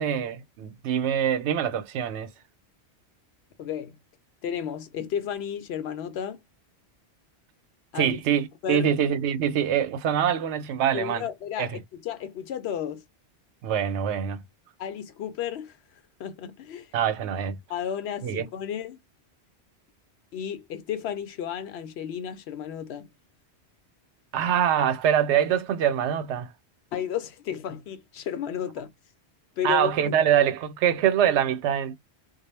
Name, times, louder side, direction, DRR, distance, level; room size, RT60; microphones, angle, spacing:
voice 1, 0.0-2.3 7.9-11.2 11.6-11.7 13.6-14.4 16.9-17.6 18.2-18.5 24.3-26.5 29.6-32.0, right 9 dB, 90° right, 0.9 m, -24 dB
voice 2, 3.6-3.9 4.4-6.4 7.9-8.2 8.6-8.9 10.9-13.0 14.8-15.8 16.2-16.9 17.7-19.0 20.3-23.1 26.9-28.9 29.6-30.2, left 9 dB, 75° left, 0.8 m, -33 dB
2.3 x 2.0 x 3.1 m
omnidirectional pair, 1.1 m